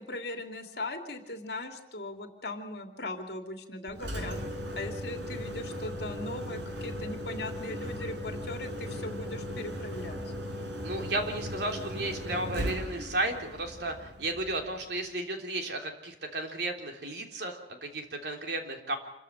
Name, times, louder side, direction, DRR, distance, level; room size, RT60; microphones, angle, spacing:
voice 1, 0.0-4.4 4.7-10.2, left 2 dB, 65° left, 4 dB, 2.8 m, -39 dB
Engine, 3.9-14.8, equal, 85° right, 4.3 m, -37 dB
voice 2, 10.8-19.0, right 2 dB, 70° right, 3 dB, 3.5 m, -34 dB
27.0 x 14.5 x 9.0 m, 0.88 s
head